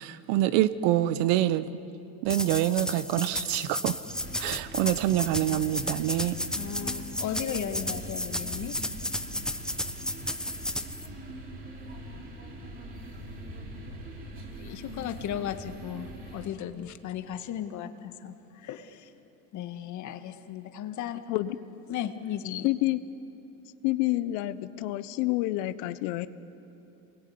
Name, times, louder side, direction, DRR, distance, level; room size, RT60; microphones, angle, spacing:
voice 1, 0.0-1.7 2.2-4.0 4.4-6.4, right 14 dB, 65° right, 14 dB, 1.2 m, -26 dB
sound 1, 2.3-11.1, left 1 dB, ahead, 0.9 m, -33 dB
sound 2, 4.1-16.5, right 1 dB, 30° right, 5.0 m, -42 dB
voice 2, 6.5-8.8 14.6-19.1 19.5-21.2 21.9-22.7, left 10 dB, 45° left, 8 dB, 1.8 m, -36 dB
voice 3, 22.6-23.0 23.8-26.3, left 17 dB, 70° left, 14 dB, 1.1 m, -28 dB
27.5 x 22.0 x 9.6 m, 2.8 s
supercardioid pair, 120°, 42 cm